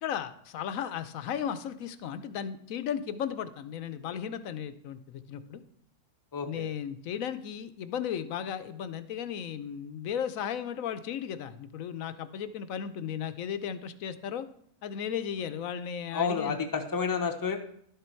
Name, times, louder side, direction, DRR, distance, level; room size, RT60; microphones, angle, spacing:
voice 1, 0.0-5.6 6.5-14.5 14.8-16.6, left 8 dB, 70° left, 12 dB, 1.0 m, -35 dB
voice 2, 6.3-6.7 16.1-17.6, left 6 dB, 20° left, 5 dB, 0.6 m, -30 dB
11.5 x 6.8 x 4.5 m, 0.66 s
omnidirectional pair, 1.6 m